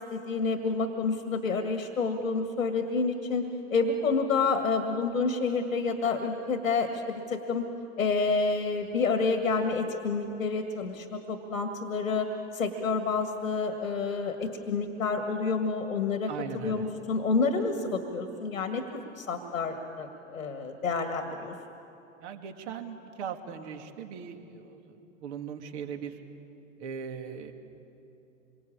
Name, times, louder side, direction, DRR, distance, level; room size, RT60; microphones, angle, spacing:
voice 1, 0.1-7.6 8.0-21.5, left 4 dB, 90° left, 6 dB, 1.9 m, -29 dB
voice 2, 16.3-16.9 22.2-26.2 26.8-27.5, right 7 dB, 60° right, 5 dB, 2.4 m, -39 dB
26.5 x 24.0 x 8.7 m, 2.9 s
hypercardioid pair, 105°, 39 cm